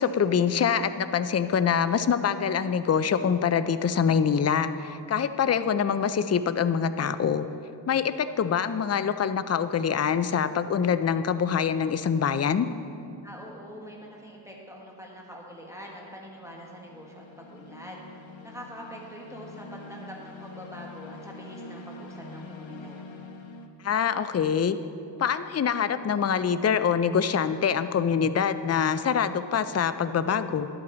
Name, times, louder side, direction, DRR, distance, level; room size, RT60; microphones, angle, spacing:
voice 1, 0.0-7.5 7.9-12.7 23.8-24.8 25.2-30.7, left 7 dB, 35° left, 12 dB, 0.4 m, -25 dB
sound 1, 9.6-9.9 15.8-23.7, left 2 dB, 85° left, 0.7 m, -45 dB
voice 2, 13.2-18.0 18.4-23.0, equal, 5° right, -2 dB, 1.4 m, -44 dB
11.5 x 8.7 x 3.9 m, 2.6 s
wide cardioid pair, 55°, 45 cm